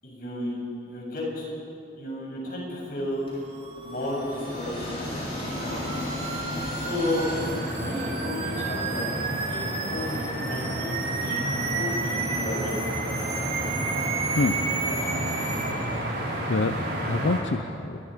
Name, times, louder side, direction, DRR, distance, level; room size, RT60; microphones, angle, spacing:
voice 1, 0.0-1.5 2.0-3.2 3.8-5.9 6.7-7.3 7.8-9.1 9.5-10.9 11.2-11.4 11.7-12.8, left 1 dB, 50° left, -3 dB, 7.7 m, -33 dB
sound 1, 3.3-9.2, left 1 dB, 30° left, 7.7 m, -35 dB
sound 2, 3.5-15.7, right 4 dB, 30° right, 2.4 m, -33 dB
sound 3, 7.2-17.4, right 1 dB, 60° right, 6.4 m, -31 dB
voice 2, 15.1-15.6 16.3-16.8 17.1-18.0, left 3 dB, 70° left, 10 dB, 0.6 m, -27 dB
29.5 x 22.5 x 5.2 m, 2.8 s
head